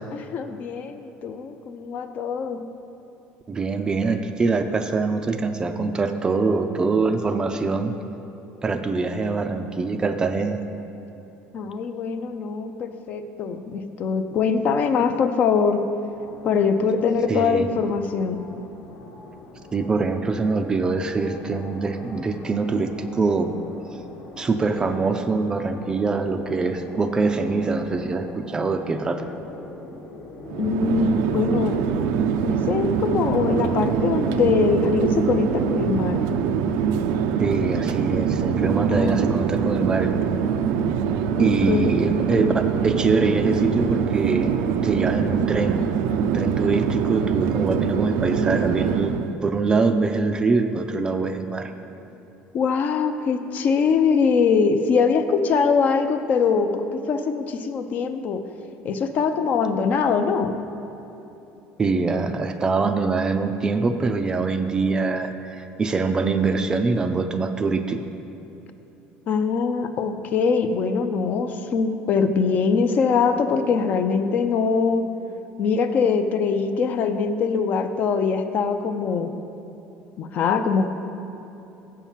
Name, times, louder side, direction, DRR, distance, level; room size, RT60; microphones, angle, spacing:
voice 1, 0.1-2.6 11.5-15.8 16.4-18.4 30.6-31.8 32.4-36.2 38.9-39.8 41.4-41.9 52.5-58.4 58.8-60.6 69.3-75.1 75.6-79.3 80.2-80.9, left 5 dB, 40° left, 8 dB, 0.5 m, -23 dB
voice 2, 3.5-7.9 8.6-10.6 17.3-17.7 19.7-23.5 24.4-29.3 37.4-40.1 41.4-44.5 44.8-45.9 46.2-51.7 61.8-68.0, right 4 dB, 20° right, 7 dB, 0.4 m, -24 dB
sound 1, 16.1-32.7, left 3 dB, 65° left, 1.1 m, -42 dB
Chatter / Fixed-wing aircraft airplane, 30.5-49.4, right 7 dB, 90° right, 0.4 m, -24 dB
7.3 x 5.6 x 7.3 m, 3.0 s
cardioid pair, 155°, 4 cm